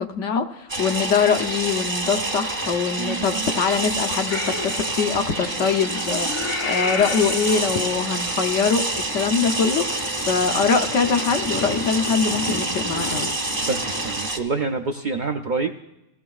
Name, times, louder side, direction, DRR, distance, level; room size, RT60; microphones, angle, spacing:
voice 1, 0.0-13.3, left 6 dB, 75° left, 6 dB, 1.1 m, -23 dB
sound 1, 0.7-14.4, right 2 dB, 20° right, 0.7 m, -27 dB
Purr / Meow, 4.3-14.2, left 3 dB, 35° left, 0.5 m, -33 dB
voice 2, 13.7-15.8, right 4 dB, 55° right, 4 dB, 0.5 m, -27 dB
16.5 x 14.5 x 2.4 m, 0.90 s
omnidirectional pair, 1.3 m